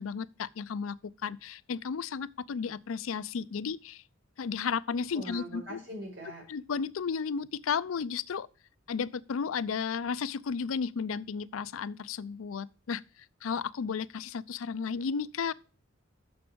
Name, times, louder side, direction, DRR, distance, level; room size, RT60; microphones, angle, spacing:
voice 1, 0.0-4.0 4.4-5.8 6.5-8.5 8.9-13.0 13.4-15.5, left 6 dB, 90° left, 0.5 m, -33 dB
voice 2, 5.1-6.4, right 1 dB, 70° right, 5.1 m, -41 dB
6.8 x 6.5 x 6.1 m
head